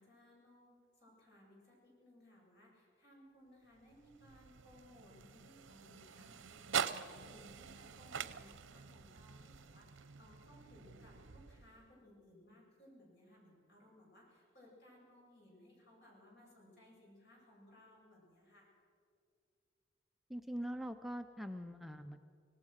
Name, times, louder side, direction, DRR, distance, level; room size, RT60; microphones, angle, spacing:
voice 1, 0.0-18.7, left 1 dB, 60° left, -3 dB, 7.5 m, -62 dB
sound 1, 3.7-12.0, right 7 dB, 85° right, 0.8 m, -45 dB
voice 2, 20.3-22.2, equal, ahead, 6 dB, 0.5 m, -43 dB
25.5 x 17.5 x 6.4 m, 2.4 s
head